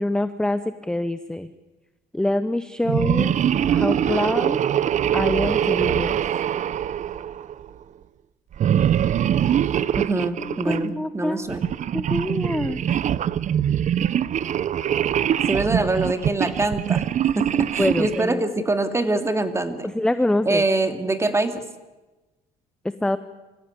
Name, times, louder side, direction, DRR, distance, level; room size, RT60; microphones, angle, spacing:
voice 1, 0.0-1.5 2.1-3.3 3.7-4.6 5.1-6.2 10.5-11.4 11.9-12.8 17.8-18.4 19.9-20.6 23.0-23.2, left 1 dB, 5° left, 12 dB, 0.8 m, -25 dB
sound 1, 2.8-7.7 8.5-10.9 11.5-18.3, right 9 dB, 45° right, 0.7 m, -23 dB
voice 2, 10.0-11.6 15.5-17.1 17.3-19.9 20.5-21.6, right 2 dB, 15° right, 8 dB, 2.3 m, -24 dB
25.0 x 16.0 x 9.9 m, 1.1 s
cardioid pair, 110°, 17 cm